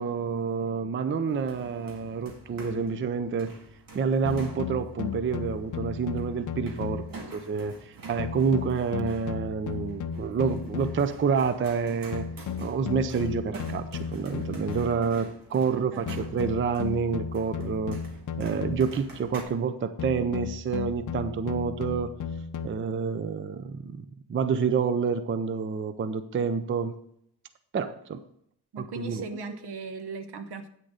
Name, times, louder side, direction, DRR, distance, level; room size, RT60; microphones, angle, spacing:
voice 1, 0.0-3.6 3.9-12.3 12.6-18.0 18.4-22.1 22.6-27.0 27.7-28.2 28.8-29.3, right 6 dB, 30° right, 12 dB, 0.4 m, -28 dB
sound 1, 1.3-19.4, right 2 dB, 55° right, 1.9 m, -47 dB
sound 2, 4.3-7.3 8.2-11.2 12.1-15.1 16.1-19.1 20.0-22.7, left 6 dB, 50° left, 0.6 m, -35 dB
voice 2, 15.6-16.1 28.7-30.7, right 3 dB, 75° right, 9 dB, 1.1 m, -38 dB
9.0 x 6.4 x 4.9 m, 0.70 s
wide cardioid pair, 155°, 40 cm